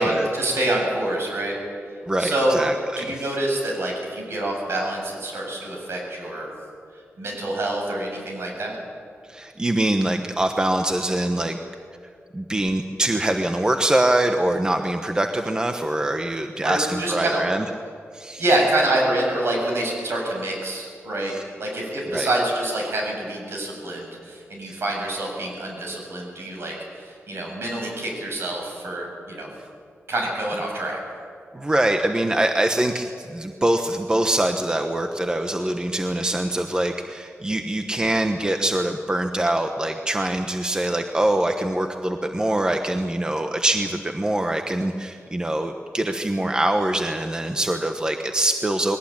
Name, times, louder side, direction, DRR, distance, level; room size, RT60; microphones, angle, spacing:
voice 1, 0.0-1.6 1.9-2.6 3.0-6.5 6.9-8.8 16.6-17.4 18.4-29.5 30.1-31.0, right 1 dB, 60° right, 0 dB, 7.7 m, -26 dB
voice 2, 2.1-3.2 9.3-11.6 12.3-17.6 18.1-18.4 21.3-21.4 22.1-22.3 24.7-24.8 31.5-49.0, right 1 dB, 15° right, 5 dB, 1.1 m, -24 dB
21.0 x 18.0 x 8.8 m, 2.2 s
wide cardioid pair, 110°, 5 cm